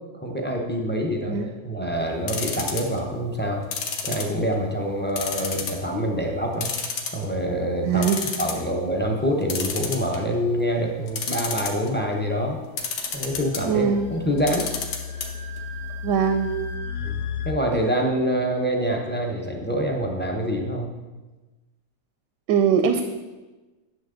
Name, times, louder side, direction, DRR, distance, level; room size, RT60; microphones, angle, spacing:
voice 1, 0.2-3.6 4.0-6.7 7.1-8.0 8.4-12.6 13.1-14.7 17.0-20.9, equal, 15° left, 0 dB, 0.4 m, -26 dB
sound 1, 2.3-3.0 3.7-4.7 5.2-5.8 6.2-6.3 6.6-7.4 7.8-7.9 8.0-8.6 9.5-10.4 11.1-11.9 12.8-13.6 14.4-15.3 15.6-15.7 15.9-16.0, left 6 dB, 80° left, 1.6 m, -29 dB
voice 2, 7.8-8.2 13.6-14.1 16.0-16.5 22.5-23.0, right 7 dB, 80° right, 7 dB, 1.2 m, -21 dB
sound 2, 13.1-17.5, left 6 dB, 45° left, 0.8 m, -34 dB
10.5 x 6.5 x 3.8 m, 1.2 s
omnidirectional pair, 1.8 m